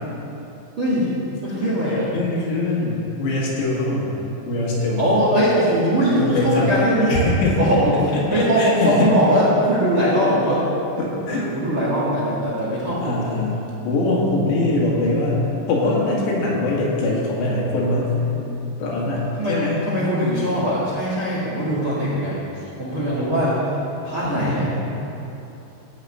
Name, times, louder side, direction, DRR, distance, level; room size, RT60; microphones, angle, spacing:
voice 1, 0.8-1.1 1.4-2.1 5.0-7.1 7.6-10.6 11.3-13.3 19.4-22.4 22.8-23.7 24.0-24.7, equal, 45° right, -8 dB, 1.7 m, -21 dB
voice 2, 2.1-4.2 4.5-5.0 6.2-6.7 7.1-7.6 8.1-9.1 11.0-11.4 13.0-13.6 13.8-15.4 15.7-18.1 18.8-19.8 23.0-23.2 24.2-24.7, left 2 dB, 70° left, -4 dB, 4.1 m, -22 dB
14.5 x 5.0 x 8.5 m, 3.0 s
omnidirectional pair, 5.3 m